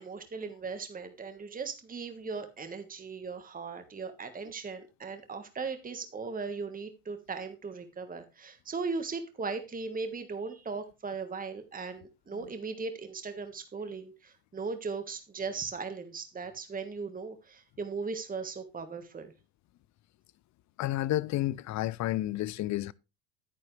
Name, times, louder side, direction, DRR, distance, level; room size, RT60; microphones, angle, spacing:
voice 1, 0.0-19.3, right 4 dB, 20° right, 1.5 m, -38 dB
voice 2, 20.8-22.9, left 15 dB, 45° left, 0.5 m, -30 dB
9.5 x 9.3 x 3.3 m
supercardioid pair, 90°, 42 cm